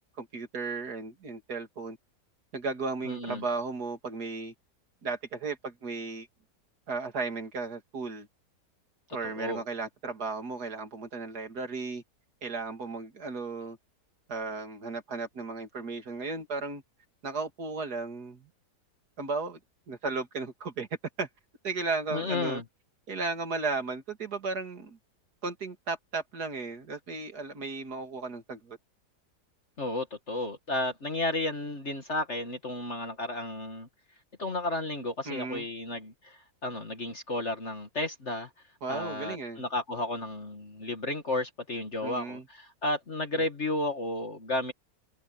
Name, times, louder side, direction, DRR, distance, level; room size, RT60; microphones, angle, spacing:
voice 1, 0.2-2.0 2.5-4.5 5.0-6.3 6.9-8.3 9.1-12.0 12.4-13.8 14.3-16.8 17.2-18.5 19.2-19.6 19.9-20.9 21.2-21.3 21.6-22.6 23.1-25.0 25.4-28.8 35.3-35.7 38.8-39.6 42.0-42.5 43.3-43.4, right 4 dB, 65° right, 3.0 m, -35 dB
voice 2, 3.1-3.4 9.2-9.6 22.1-22.6 29.8-33.9 34.4-38.5 38.9-44.7, left 2 dB, 45° left, 2.1 m, -33 dB
omnidirectional pair, 1.8 m